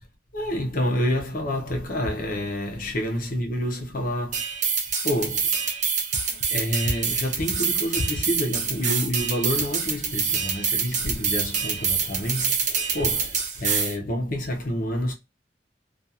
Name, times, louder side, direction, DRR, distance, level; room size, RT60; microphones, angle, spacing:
voice 1, 0.3-4.4 5.0-5.4 6.5-15.1, equal, 55° left, 0.7 m, -28 dB
sound 1, 4.3-14.0, right 6 dB, 45° right, 0.6 m, -26 dB
2.4 x 2.4 x 2.7 m
head